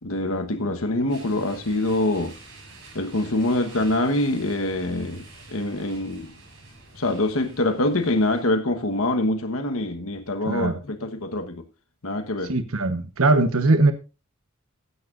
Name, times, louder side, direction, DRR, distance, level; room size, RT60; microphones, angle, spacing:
voice 1, 0.0-2.3 2.9-6.3 6.9-11.6 12.0-12.5, left 2 dB, 75° left, 1.2 m, -25 dB
sound 1, 1.1-8.4, right 2 dB, 60° right, 5.5 m, -47 dB
voice 2, 12.5-13.9, right 2 dB, 80° right, 1.0 m, -20 dB
16.0 x 11.0 x 2.5 m
head